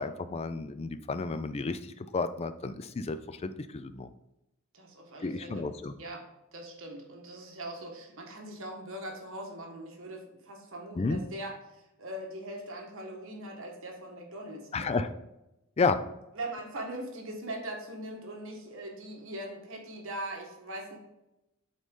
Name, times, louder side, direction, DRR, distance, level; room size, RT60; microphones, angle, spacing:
voice 1, 0.0-4.1 5.2-5.9 11.0-11.2 14.7-15.1 15.8-16.0, left 4 dB, 30° left, 11 dB, 0.3 m, -31 dB
voice 2, 4.7-5.6 6.0-6.2 6.5-15.0 16.3-21.0, right 1 dB, 60° right, 1 dB, 1.3 m, -41 dB
8.2 x 4.0 x 3.7 m, 0.92 s
head